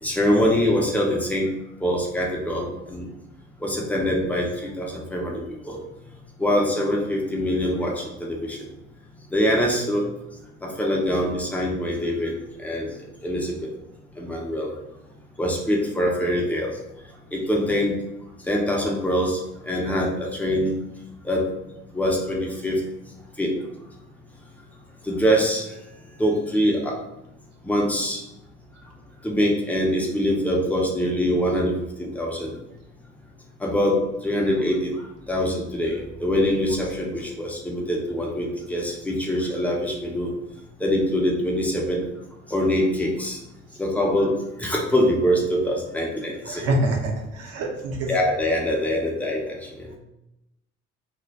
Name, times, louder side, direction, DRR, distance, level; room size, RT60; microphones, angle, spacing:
voice 1, 0.0-1.5 1.8-3.1 3.6-5.4 5.7-5.8 6.4-7.9 8.2-8.6 9.3-10.0 10.6-12.3 12.6-12.9 13.2-13.5 14.2-14.7 15.4-16.7 17.3-17.9 18.5-19.4 19.7-20.7 21.2-21.4 21.9-22.8 23.4-23.5 25.1-25.6 26.2-26.9 27.6-28.2 29.2-31.7 32.0-32.5 33.6-33.9 34.2-34.9 35.3-40.3 40.8-42.1 42.5-43.4 43.8-44.3 44.6-46.6 48.1-49.6, equal, 5° left, -2 dB, 0.6 m, -23 dB
voice 2, 46.4-48.1, right 1 dB, 45° right, 0 dB, 0.7 m, -25 dB
2.1 x 2.1 x 2.7 m, 0.89 s
figure-of-eight pair, 50°, 36 cm